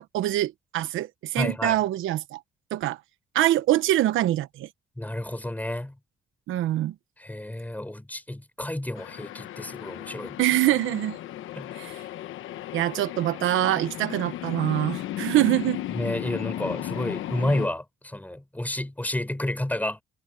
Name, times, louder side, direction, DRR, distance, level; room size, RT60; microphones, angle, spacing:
voice 1, 0.0-2.4 2.7-3.0 3.3-4.7 6.5-6.9 10.4-11.2 11.8-12.0 12.7-15.8, right 14 dB, 85° right, 1.0 m, -24 dB
voice 2, 1.3-1.8 5.0-5.9 7.2-10.4 11.5-11.7 15.9-20.0, left 1 dB, 10° left, 6.7 m, -30 dB
sound 1, 9.0-17.7, left 13 dB, 85° left, 1.1 m, -35 dB
cardioid pair, 90°, 20 cm